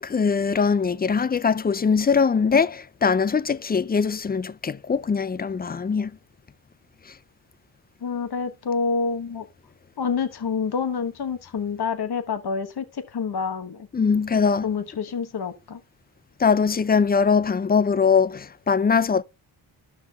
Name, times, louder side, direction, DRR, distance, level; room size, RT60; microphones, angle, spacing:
voice 1, 0.0-6.1 13.9-14.7 16.4-19.2, left 5 dB, 20° left, 0.3 m, -21 dB
voice 2, 8.0-9.4 10.0-13.8 14.6-15.8, left 5 dB, 55° left, 1.2 m, -27 dB
12.5 x 5.9 x 2.3 m
cardioid pair, 55°, 48 cm